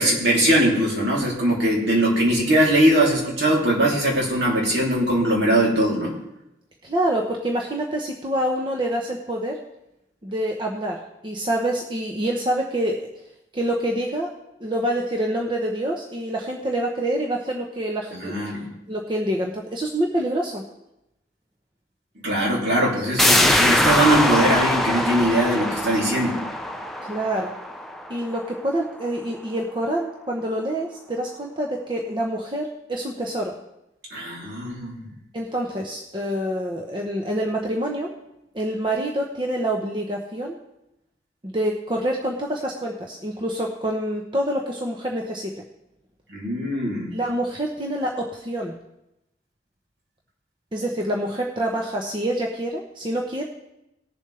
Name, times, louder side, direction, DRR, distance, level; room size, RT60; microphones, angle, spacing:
voice 1, 0.0-6.1 18.1-18.7 22.2-26.4 34.1-34.9 46.3-47.1, right 1 dB, 60° right, -3 dB, 3.1 m, -21 dB
voice 2, 6.8-9.6 10.2-13.1 13.5-14.3 14.6-18.4 18.9-20.6 27.0-27.5 28.1-33.6 35.3-38.1 38.5-40.6 41.4-45.5 47.1-48.7 50.7-53.4, right 1 dB, 25° right, 0 dB, 0.8 m, -26 dB
sound 1, 23.2-28.7 29.0-29.1, left 1 dB, ahead, 0.5 m, -22 dB
18.5 x 7.2 x 3.3 m, 0.88 s
head